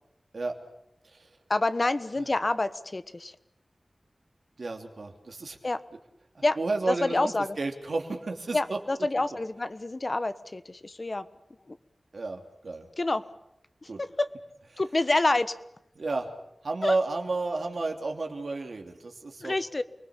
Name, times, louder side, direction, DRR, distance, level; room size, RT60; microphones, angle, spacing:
voice 1, 1.5-3.3 5.6-5.8 6.4-6.6 6.9-7.6 8.5-11.3 11.7-11.8 13.0-13.3 13.8-14.3 14.8-15.6 16.8-16.9 19.4-19.8, left 2 dB, 45° left, 12 dB, 1.3 m, -27 dB
voice 2, 4.6-5.6 6.3-8.8 12.1-12.9 13.9-14.0 15.9-16.3 16.6-19.5, right 3 dB, 75° right, 3 dB, 3.0 m, -31 dB
29.0 x 20.0 x 7.3 m, 0.84 s
wide cardioid pair, 50°, 0 cm